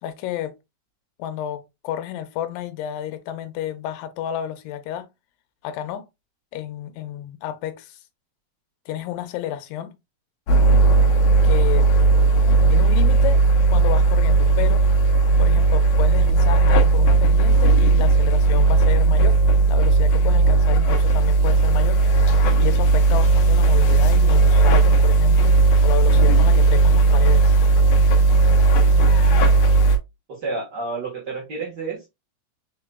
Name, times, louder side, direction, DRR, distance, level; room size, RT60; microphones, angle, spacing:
voice 1, 0.0-0.5 1.2-5.1 5.6-6.0 6.5-8.0 8.9-10.0 11.4-11.9 12.7-13.4 13.7-14.9 15.4-19.4 19.7-22.0 22.6-25.5 25.8-27.5, left 11 dB, 85° left, 2.4 m, -31 dB
sound 1, 10.5-30.0, right 3 dB, 70° left, 1.7 m, -16 dB
voice 2, 30.3-32.1, right 3 dB, 65° right, 1.0 m, -30 dB
4.7 x 4.1 x 2.2 m
omnidirectional pair, 3.9 m